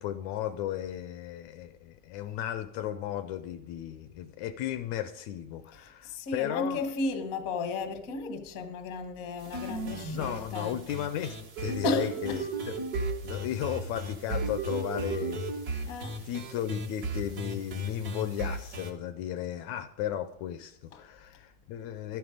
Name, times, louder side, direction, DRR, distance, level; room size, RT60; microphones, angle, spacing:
voice 1, 0.0-6.9 10.1-12.8 13.2-15.4 16.2-22.2, left 11 dB, 80° left, 1.8 m, -35 dB
voice 2, 6.0-10.7 11.8-12.4 15.9-16.1, left 3 dB, 55° left, 0.9 m, -34 dB
sound 1, 9.4-18.9, right 2 dB, 55° right, 1.0 m, -35 dB
12.0 x 9.5 x 5.0 m
omnidirectional pair, 3.6 m